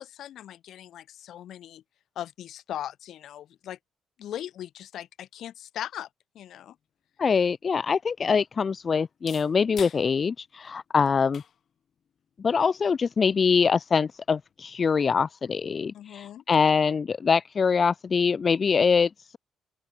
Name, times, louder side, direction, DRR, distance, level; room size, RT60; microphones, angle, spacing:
voice 1, 0.0-1.8 2.2-3.8 4.2-6.1 6.4-6.8 15.9-16.4, left 11 dB, 75° left, 3.4 m, -39 dB
sound 1, 6.7-14.7, left 8 dB, 55° left, 3.1 m, -51 dB
voice 2, 7.2-11.4 12.4-19.4, left 5 dB, 40° left, 0.5 m, -24 dB
open air
cardioid pair, 90°, 0 cm